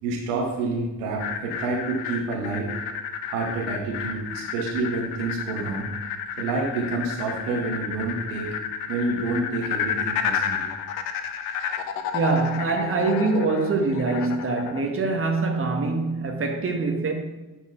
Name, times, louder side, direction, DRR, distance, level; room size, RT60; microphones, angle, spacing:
voice 1, 0.0-2.7 3.3-5.9 6.4-8.6 8.9-10.7, right 3 dB, 75° right, 1.6 m, -28 dB
sound 1, 1.2-14.8, left 7 dB, 70° left, 0.8 m, -31 dB
voice 2, 12.1-17.1, right 3 dB, 35° right, 1.7 m, -24 dB
9.6 x 4.5 x 5.9 m
figure-of-eight pair, 45°, 40 cm